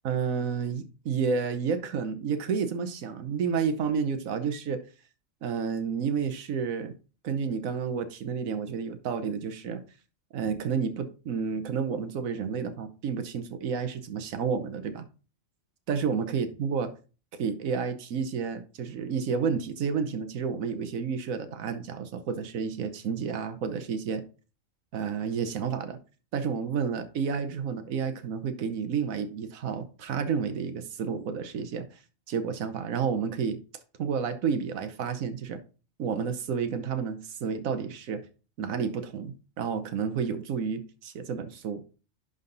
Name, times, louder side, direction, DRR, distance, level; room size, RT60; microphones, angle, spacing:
voice 1, 0.0-4.8 5.4-6.9 7.2-9.8 10.3-15.1 15.9-16.9 17.4-24.2 24.9-26.0 26.3-31.9 32.3-33.6 34.0-35.6 36.0-38.2 38.6-41.8, right 6 dB, 90° right, 9 dB, 1.3 m, -30 dB
11.0 x 3.9 x 3.9 m, 0.36 s
omnidirectional pair, 1.4 m